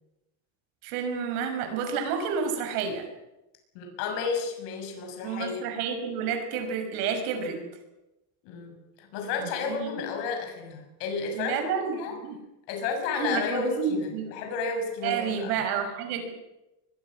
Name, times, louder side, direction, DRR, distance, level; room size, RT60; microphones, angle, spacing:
voice 1, 0.8-3.1 5.2-7.6 9.4-9.9 11.3-12.4 13.2-14.3 15.0-16.3, right 6 dB, 70° right, 6 dB, 6.3 m, -30 dB
voice 2, 3.7-5.6 7.5-7.7 8.4-12.1 12.7-15.6, left 5 dB, 60° left, 3 dB, 7.0 m, -32 dB
23.5 x 22.5 x 6.4 m, 0.94 s
cardioid pair, 170°, 46 cm